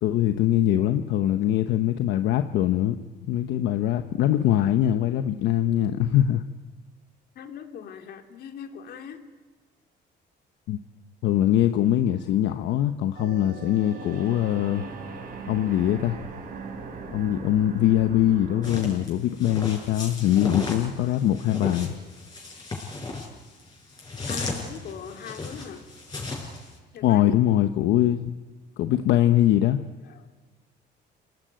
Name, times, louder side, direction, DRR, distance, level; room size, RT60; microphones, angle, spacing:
voice 1, 0.0-3.0 3.3-6.4 10.7-10.8 11.2-14.8 15.5-16.2 17.1-21.9 27.0-28.3 28.8-29.8, left 12 dB, 80° left, 8 dB, 1.1 m, -22 dB
voice 2, 7.3-9.2 24.3-25.8 26.9-27.4 30.0-30.3, left 7 dB, 60° left, 5 dB, 3.0 m, -40 dB
sound 1, 11.8-18.8, right 4 dB, 55° right, 5.5 m, -40 dB
sound 2, 18.6-26.7, left 3 dB, 20° left, 7.0 m, -35 dB
28.5 x 18.5 x 9.1 m, 1.3 s
cardioid pair, 130°, 18 cm